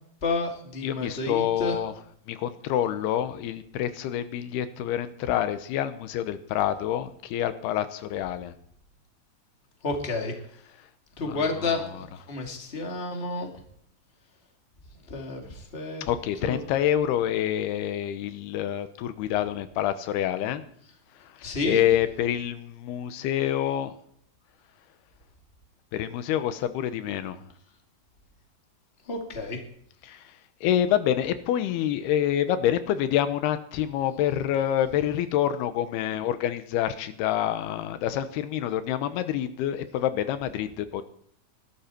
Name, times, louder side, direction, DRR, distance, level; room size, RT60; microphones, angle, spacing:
voice 1, 0.2-1.8 9.8-10.3 11.2-13.5 15.1-16.0 16.4-16.6 21.4-21.8 29.1-29.6, left 3 dB, 20° left, 2 dB, 2.1 m, -30 dB
voice 2, 0.8-1.9 2.3-8.5 11.3-11.8 16.0-20.6 21.3-23.9 25.9-27.4 30.0-30.3 30.6-41.0, left 11 dB, 90° left, 11 dB, 3.0 m, -27 dB
20.0 x 12.5 x 4.5 m, 0.65 s
omnidirectional pair, 4.5 m